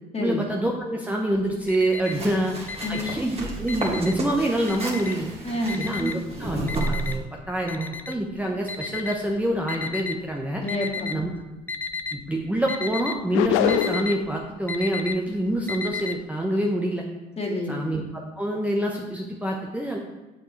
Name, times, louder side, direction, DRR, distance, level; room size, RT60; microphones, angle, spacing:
voice 1, 0.2-5.3 5.8-10.6 11.1-11.3 12.1-17.0 17.7-18.0 18.4-20.0, right 1 dB, 5° right, -1 dB, 1.0 m, -26 dB
Alarm, 1.3-2.3 2.6-4.3 4.7-5.3 5.7-10.2 10.7-11.3 11.6-12.2 12.5-16.2, left 5 dB, 10° left, 0.5 m, -33 dB
sound 1, 2.0-7.2, right 2 dB, 30° right, 2.1 m, -32 dB
voice 2, 5.4-5.8 10.6-11.1 17.4-17.8, left 1 dB, 30° left, -2 dB, 2.1 m, -28 dB
sound 2, 13.3-14.2, left 12 dB, 70° left, 0.4 m, -23 dB
7.7 x 6.8 x 3.2 m, 1.1 s
hypercardioid pair, 60°, 21 cm